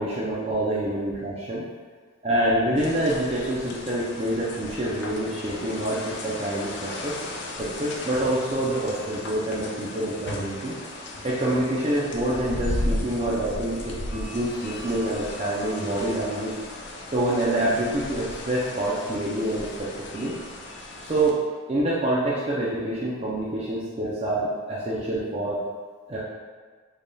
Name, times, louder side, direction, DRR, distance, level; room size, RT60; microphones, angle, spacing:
voice 1, 0.0-1.6 2.2-7.1 7.6-10.8 11.2-16.6 17.1-19.9 20.1-20.3 21.1-21.4 21.7-25.6 26.1-26.2, right 1 dB, 30° right, -7 dB, 0.5 m, -26 dB
sound 1, 2.8-21.3, left 1 dB, 50° left, 0.4 m, -36 dB
3.9 x 3.4 x 2.2 m, 1.5 s
head